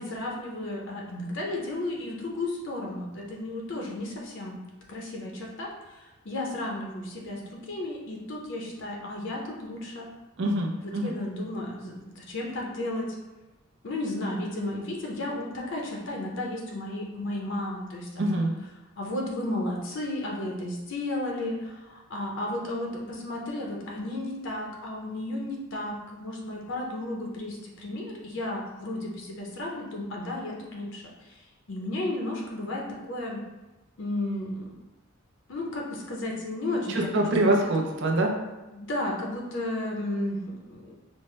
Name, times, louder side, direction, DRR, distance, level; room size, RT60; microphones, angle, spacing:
voice 1, 0.0-4.6 4.9-10.1 10.8-13.1 13.8-18.4 19.0-31.4 31.7-33.4 34.0-34.7 35.5-37.1 38.7-41.0, left 1 dB, 60° left, -2 dB, 0.6 m, -33 dB
voice 2, 10.4-11.2 18.2-18.5 36.9-38.3, right 1 dB, 60° right, 1 dB, 0.6 m, -25 dB
5.2 x 2.1 x 3.2 m, 1.1 s
head